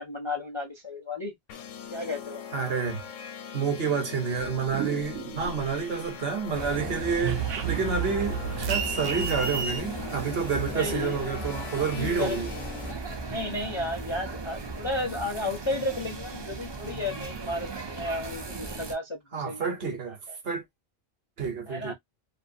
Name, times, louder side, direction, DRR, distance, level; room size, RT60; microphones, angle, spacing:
voice 1, 0.0-1.3 1.9-2.4 10.7-11.3 11.8-12.4 13.2-19.8 20.0-20.4 21.7-21.9, left 2 dB, 35° left, 0.5 m, -33 dB
sound 1, 1.5-12.9, left 8 dB, 90° left, 1.0 m, -41 dB
voice 2, 2.5-3.0 3.5-12.5 19.3-20.2 20.4-20.6 21.4-21.9, right 5 dB, 55° right, 1.0 m, -29 dB
sound 2, 4.4-6.1 6.4-9.8, right 7 dB, 85° right, 0.9 m, -32 dB
sound 3, 6.5-18.9, right 3 dB, 40° right, 0.4 m, -37 dB
2.6 x 2.4 x 2.5 m
omnidirectional pair, 1.2 m